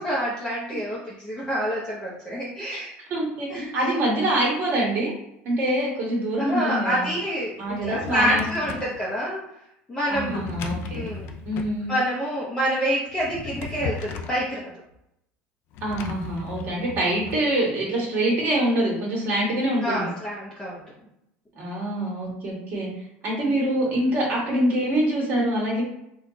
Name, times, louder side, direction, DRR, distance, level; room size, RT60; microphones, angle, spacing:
voice 1, 0.0-2.9 3.5-3.9 6.4-9.4 9.9-10.5 10.9-11.2 11.9-14.7 19.8-20.8, equal, 15° left, -7 dB, 0.8 m, -27 dB
voice 2, 3.1-5.1 5.4-7.1 7.6-8.7 10.1-11.1 11.4-11.9 15.8-20.1 21.5-22.9 23.2-25.8, right 1 dB, 40° right, -3 dB, 1.5 m, -25 dB
Drawer open or close, 7.6-9.0 10.1-11.8 13.1-14.4 15.7-17.4, left 4 dB, 55° left, 0.5 m, -36 dB
4.2 x 2.4 x 4.0 m, 0.81 s
cardioid pair, 150°, 5 cm